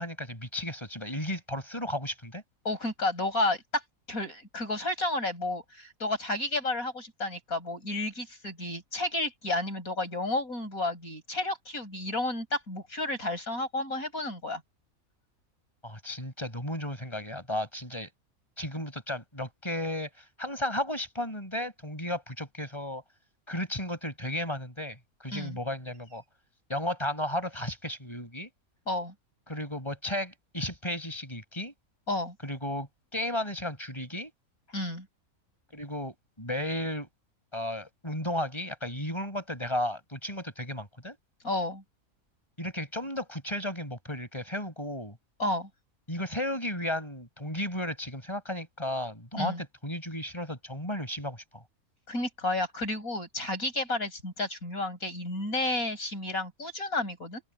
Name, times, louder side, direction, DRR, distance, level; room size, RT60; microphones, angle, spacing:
voice 1, 0.0-2.4 15.8-18.1 18.6-23.0 23.5-26.2 26.7-28.5 29.5-31.7 32.4-34.3 35.7-37.1 37.5-41.2 42.6-45.2 46.1-51.6, left 1 dB, 20° left, 6.3 m, -34 dB
voice 2, 2.7-3.8 4.1-14.6 25.3-25.6 28.9-29.1 32.1-32.4 34.7-35.1 41.4-41.8 45.4-45.7 49.4-49.6 52.1-57.4, left 2 dB, 75° left, 8.7 m, -31 dB
open air
omnidirectional pair, 1.5 m